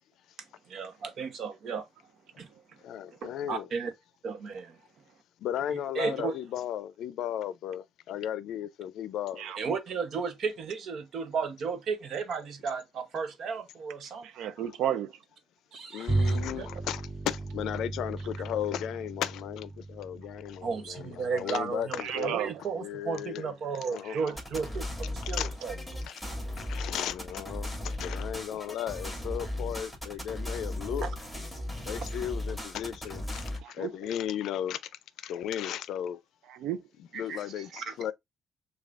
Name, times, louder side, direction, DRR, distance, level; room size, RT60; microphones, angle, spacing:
voice 1, 0.7-1.9 2.4-2.5 3.2-3.9 4.2-4.8 6.0-6.3 9.6-14.3 15.7-16.7 20.6-25.7 31.0-31.1 37.1-37.9, right 5 dB, 65° right, 0.9 m, -34 dB
voice 2, 2.8-3.7 5.4-9.5 15.9-22.4 22.7-24.2 25.2-25.5 26.1-26.2 26.7-31.1 31.9-34.8 35.2-36.2 37.0-38.1, left 10 dB, 80° left, 0.4 m, -35 dB
voice 3, 14.2-15.1 22.0-22.6 24.1-24.3 33.6-33.9 36.5-36.8, right 10 dB, 85° right, 0.4 m, -33 dB
Bowed string instrument, 16.1-21.7, right 2 dB, 20° right, 1.8 m, -35 dB
sound 1, 24.4-33.6, left 1 dB, ahead, 2.4 m, -36 dB
6.6 x 2.3 x 2.5 m
cardioid pair, 90°, 0 cm